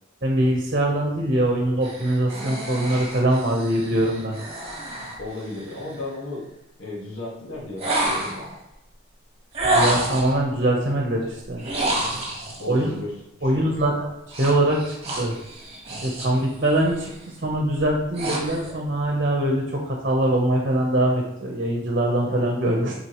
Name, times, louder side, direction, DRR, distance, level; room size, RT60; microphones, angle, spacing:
voice 1, 0.2-4.4 9.7-11.6 12.7-12.9 13.4-14.1 14.4-15.4 16.0-17.1 17.4-22.9, right 1 dB, 50° right, 0 dB, 1.1 m, -22 dB
sound 1, 1.8-6.0 7.8-8.5 9.5-10.4 11.6-12.6 14.3-16.4 16.8-17.1 17.7-18.7, right 1 dB, 30° right, 1.6 m, -28 dB
voice 2, 5.2-6.4 6.8-8.5 12.6-13.1 13.4-13.9, left 2 dB, 90° left, -3 dB, 2.0 m, -34 dB
7.4 x 4.4 x 3.2 m, 0.89 s
head